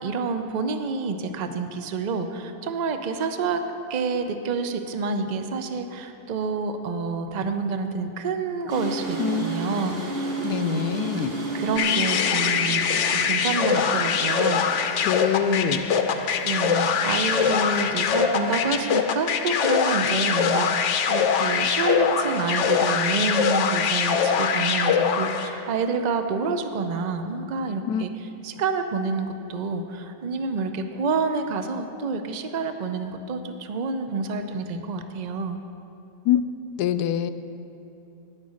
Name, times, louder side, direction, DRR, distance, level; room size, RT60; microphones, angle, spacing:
voice 1, 0.0-3.6 3.9-10.3 10.7-10.8 11.1-11.2 11.5-15.1 15.4-35.6, right 4 dB, 80° right, 7 dB, 0.3 m, -28 dB
sound 1, 8.7-18.6, right 2 dB, 40° right, 1.3 m, -34 dB
voice 2, 10.4-11.3 15.0-15.9 27.9-28.0 36.2-36.4 36.8-37.3, left 10 dB, 85° left, 12 dB, 1.1 m, -24 dB
sound 2, 11.8-25.6, left 6 dB, 60° left, 0.8 m, -23 dB
11.0 x 9.8 x 6.4 m, 2.9 s
omnidirectional pair, 1.7 m